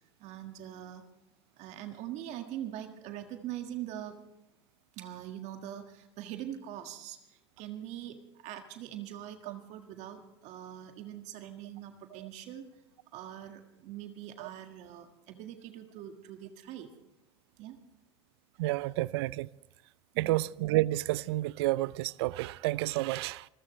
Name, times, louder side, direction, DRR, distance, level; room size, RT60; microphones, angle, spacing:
voice 1, 0.2-1.0 1.6-4.2 4.9-12.7 13.1-16.9 17.6-17.8 20.1-20.4, right 11 dB, 55° right, 1.7 m, -43 dB
voice 2, 18.6-19.5 20.2-23.5, right 18 dB, 70° right, 0.5 m, -30 dB
26.0 x 14.5 x 3.2 m
hypercardioid pair, 90°, 14 cm